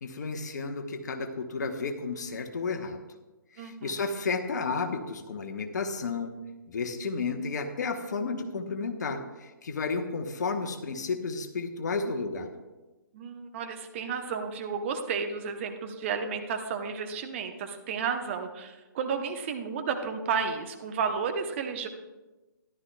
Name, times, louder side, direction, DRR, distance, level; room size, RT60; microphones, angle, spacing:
voice 1, 0.0-3.0 3.5-6.3 6.7-12.5, left 4 dB, 55° left, 6 dB, 1.1 m, -32 dB
voice 2, 3.6-3.9 13.1-21.9, right 6 dB, 35° right, 5 dB, 0.9 m, -32 dB
13.5 x 11.5 x 2.3 m, 1.1 s
figure-of-eight pair, 135°, 11 cm